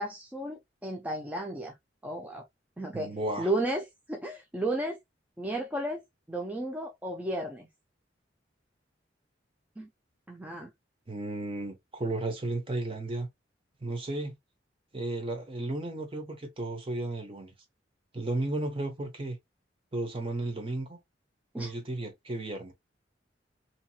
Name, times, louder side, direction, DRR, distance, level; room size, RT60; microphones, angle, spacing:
voice 1, 0.0-1.7 2.0-2.4 2.8-3.1 3.4-5.0 5.4-6.0 6.3-7.7 9.8-9.9 10.3-10.7 21.5-21.7, right 1 dB, 10° right, 0.4 m, -33 dB
voice 2, 2.9-3.5 11.1-13.3 13.8-14.4 14.9-17.5 18.1-19.4 19.9-21.0 21.6-22.7, right 2 dB, 30° right, 0.7 m, -34 dB
2.8 x 2.8 x 2.2 m
head